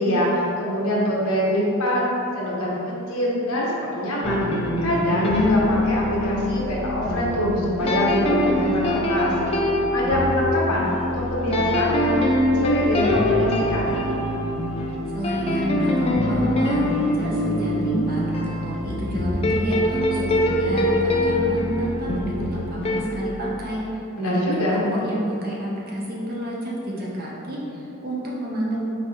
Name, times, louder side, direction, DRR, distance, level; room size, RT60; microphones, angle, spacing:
voice 1, 0.0-2.0 2.3-2.8 3.1-3.7 3.9-4.5 4.8-9.3 9.9-12.2 12.6-13.9 24.1-24.8, equal, 85° left, -5 dB, 1.0 m, -24 dB
sound 1, 4.2-23.0, left 1 dB, 25° left, 0.3 m, -23 dB
voice 2, 15.1-23.8 24.2-28.9, equal, 45° right, -5 dB, 0.8 m, -29 dB
4.7 x 3.3 x 2.9 m, 2.7 s
head